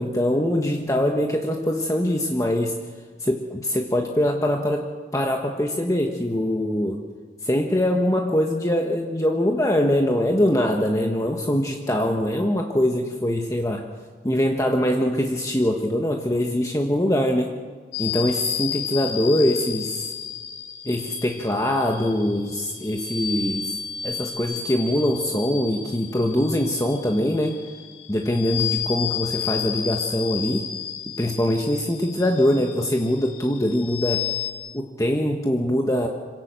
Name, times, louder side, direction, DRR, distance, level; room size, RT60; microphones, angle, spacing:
voice 1, 0.0-2.7 3.2-7.0 7.4-13.9 14.2-17.5 18.0-20.1 20.8-23.8 24.0-27.5 28.1-30.6 31.2-34.3 34.7-36.1, left 1 dB, 20° left, 2 dB, 1.4 m, -23 dB
sound 1, 17.9-34.5, left 9 dB, 75° left, 4.2 m, -32 dB
26.5 x 17.5 x 7.6 m, 1.5 s
head